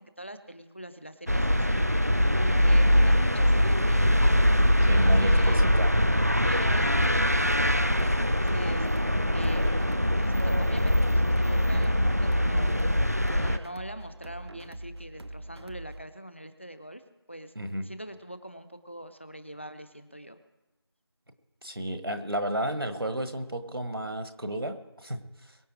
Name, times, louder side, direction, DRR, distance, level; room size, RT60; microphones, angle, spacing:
voice 1, 0.0-5.7 6.4-8.9 9.3-9.8 10.1-12.9 13.3-17.0 17.3-17.5 17.8-20.4, right 1 dB, 30° left, 11 dB, 0.7 m, -43 dB
sound 1, 1.3-13.6, equal, 35° right, 0.4 m, -23 dB
voice 2, 4.9-5.9 17.5-17.8 21.6-25.6, right 1 dB, 60° right, 9 dB, 1.5 m, -32 dB
sound 2, 6.7-16.0, right 1 dB, 80° right, 0.9 m, -43 dB
23.0 x 8.2 x 4.8 m, 1.0 s
figure-of-eight pair, 175°, 14 cm